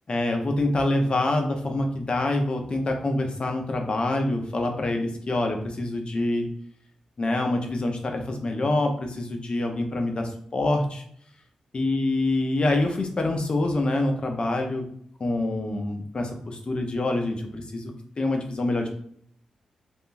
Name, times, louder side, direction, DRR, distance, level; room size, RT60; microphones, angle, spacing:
voice 1, 0.1-6.5 7.2-11.0 11.7-14.9 15.2-18.9, left 2 dB, 45° left, 3 dB, 0.7 m, -26 dB
3.5 x 2.2 x 2.6 m, 0.64 s
supercardioid pair, 50°, 2 cm